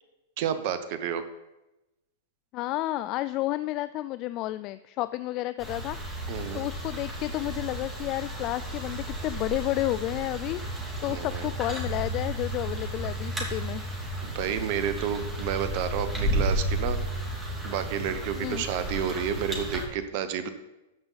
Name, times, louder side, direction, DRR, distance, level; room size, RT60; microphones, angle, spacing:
voice 1, 0.4-1.2 6.3-6.6 11.1-11.5 14.2-17.0 17.3-20.5, right 8 dB, 50° right, 11 dB, 1.0 m, -30 dB
voice 2, 2.5-6.0 6.5-10.6 11.0-13.8 18.4-18.6, left 16 dB, 40° left, 13 dB, 0.3 m, -31 dB
sound 1, 5.6-19.9, right 1 dB, 10° right, 2.7 m, -33 dB
13.5 x 5.5 x 4.1 m, 0.98 s
hypercardioid pair, 105°, 0 cm